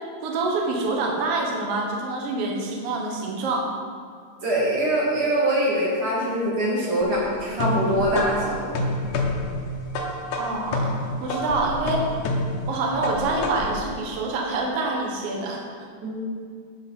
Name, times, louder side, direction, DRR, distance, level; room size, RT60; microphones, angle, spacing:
voice 1, 0.2-3.7 10.3-10.9 11.2-12.0 12.7-15.6, right 3 dB, 70° right, -1 dB, 1.4 m, -26 dB
voice 2, 4.4-8.8 16.0-16.2, right 1 dB, 40° right, -6 dB, 2.7 m, -23 dB
sound 1, 7.0-13.9, left 1 dB, 80° left, 1.8 m, -28 dB
12.0 x 6.7 x 4.3 m, 2.2 s
omnidirectional pair, 4.8 m